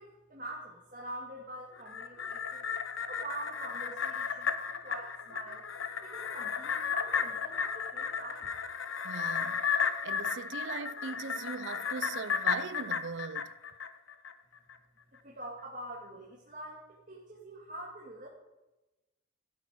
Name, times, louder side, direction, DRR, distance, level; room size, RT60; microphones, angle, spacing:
voice 1, 0.0-2.7 3.1-5.7 6.0-8.5 15.2-18.3, right 1 dB, 40° right, 1.9 m, -45 dB
sound 1, 1.8-14.3 14.7-14.8, left 6 dB, 85° left, 0.8 m, -34 dB
voice 2, 9.0-9.7 10.0-13.5, right 5 dB, 70° right, 0.5 m, -40 dB
16.0 x 8.4 x 5.0 m
head